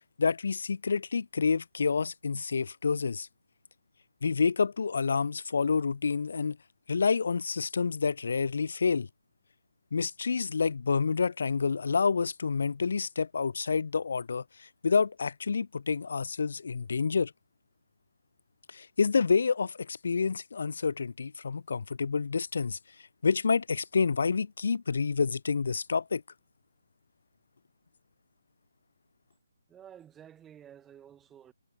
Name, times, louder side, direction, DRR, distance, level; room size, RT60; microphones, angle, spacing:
voice 1, 0.2-3.3 4.2-6.6 6.9-9.1 9.9-17.3 18.7-22.8 23.2-26.2, left 5 dB, 55° left, 0.4 m, -28 dB
voice 2, 29.7-31.5, right 9 dB, 10° right, 7.5 m, -52 dB
figure-of-eight pair, 145°, 0 cm